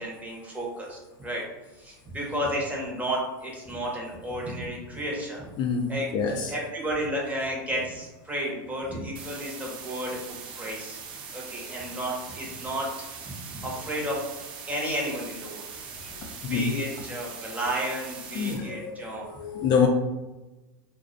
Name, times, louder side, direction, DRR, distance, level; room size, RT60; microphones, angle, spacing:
voice 1, 0.0-1.4 1.7-5.5 5.9-11.0 11.3-14.2 14.7-15.7 16.5-19.3 19.6-19.7, equal, 15° right, -3 dB, 0.7 m, -32 dB
voice 2, 6.1-6.5 16.4-16.7 18.4-19.9, left 6 dB, 40° left, 1 dB, 0.4 m, -26 dB
sound 1, 9.1-18.6, right 6 dB, 50° right, 0.5 m, -41 dB
2.3 x 2.1 x 2.5 m, 1.1 s
hypercardioid pair, 105°, 11 cm